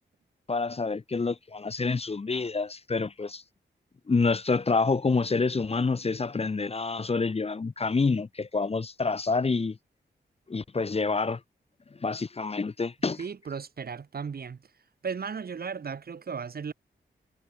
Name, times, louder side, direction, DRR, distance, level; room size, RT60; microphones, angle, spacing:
voice 1, 0.5-3.4 4.1-9.8 10.5-11.4 11.9-13.2, left 4 dB, 30° left, 0.7 m, -27 dB
voice 2, 13.2-14.7 15.0-16.7, right 6 dB, 55° right, 0.9 m, -35 dB
cardioid pair, 65°, 19 cm